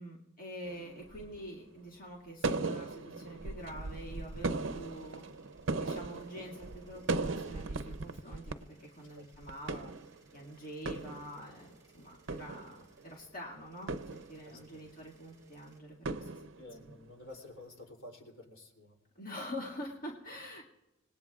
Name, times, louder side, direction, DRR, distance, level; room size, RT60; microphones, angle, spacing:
voice 1, 0.0-5.2 5.8-9.9 10.3-16.5 16.8-16.9 19.2-20.6, equal, 45° left, -3 dB, 2.1 m, -46 dB
sound 1, 0.6-1.5 2.4-8.5 8.8-8.9 9.3-10.4 10.7-11.7 12.1-13.2 13.9-14.8 16.1-17.1, right 3 dB, 75° right, 0.6 m, -38 dB
sound 2, 3.6-15.8, right 2 dB, 20° right, 3.9 m, -66 dB
voice 2, 14.4-14.9 16.6-18.9, left 1 dB, 85° left, 1 dB, 3.1 m, -51 dB
26.0 x 19.5 x 2.4 m, 0.96 s
head